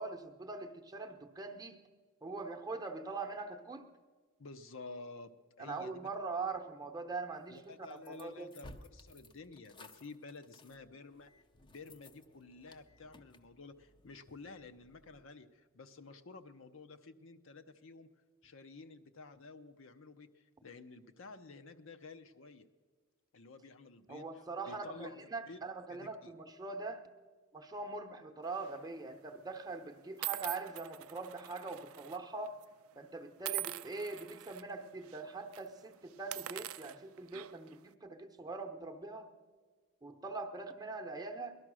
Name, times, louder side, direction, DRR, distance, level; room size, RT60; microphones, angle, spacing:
voice 1, 0.0-1.8 2.2-3.9 5.6-8.5 24.1-27.0 27.5-32.6 33.0-39.3 40.0-41.6, right 3 dB, 20° right, 5 dB, 0.8 m, -42 dB
voice 2, 4.4-5.3 5.6-5.9 7.5-11.3 11.6-18.1 18.4-22.7 23.3-25.6 25.9-26.3, left 3 dB, 65° left, 8 dB, 0.7 m, -52 dB
sound 1, 7.6-15.2, left 1 dB, 20° left, 0.6 m, -58 dB
sound 2, 28.5-28.8 29.6-29.7 30.2-32.2 32.4-32.6 33.4-34.6 35.0-35.2 35.5-35.7 36.2-37.7, right 15 dB, 75° right, 0.4 m, -43 dB
18.5 x 12.0 x 6.2 m, 1.4 s
head